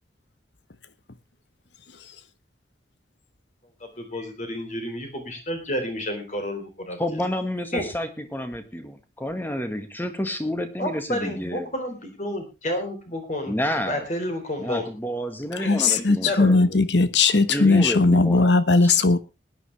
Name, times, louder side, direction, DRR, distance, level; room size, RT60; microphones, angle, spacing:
voice 1, 3.8-7.0 7.7-7.9 10.8-13.5 13.9-14.9 15.6-16.8, left 1 dB, 40° left, 3.9 m, -30 dB
voice 2, 7.0-11.7 13.5-14.0 14.6-16.6 17.5-18.5 18.8-19.0, equal, 10° left, 1.7 m, -30 dB
voice 3, 15.6-19.2, left 3 dB, 75° left, 1.2 m, -18 dB
20.0 x 10.0 x 3.3 m
head